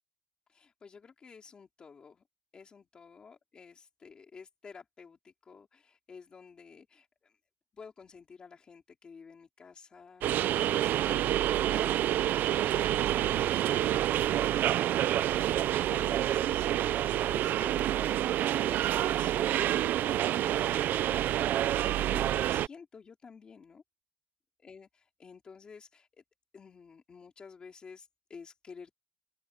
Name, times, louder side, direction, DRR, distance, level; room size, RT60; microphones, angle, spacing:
voice 1, 0.5-2.2 2.5-7.4 7.7-14.6 15.1-21.6 22.1-23.8 24.6-26.2 26.5-28.9, left 5 dB, 30° left, 2.7 m, -52 dB
sound 1, 10.2-22.7, right 12 dB, 70° right, 0.6 m, -28 dB
open air
cardioid pair, 180°, 3 cm